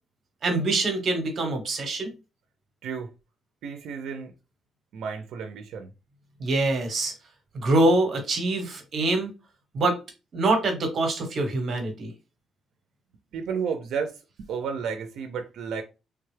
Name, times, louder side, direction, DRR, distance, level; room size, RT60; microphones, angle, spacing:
voice 1, 0.4-2.1 6.4-7.1 7.5-9.3 9.7-10.0 10.3-12.1, right 2 dB, 45° right, 1.1 m, -24 dB
voice 2, 3.6-4.3 4.9-5.9 13.3-15.8, right 6 dB, 80° right, 0.5 m, -32 dB
3.5 x 2.2 x 3.2 m
cardioid pair, 155°, 0 cm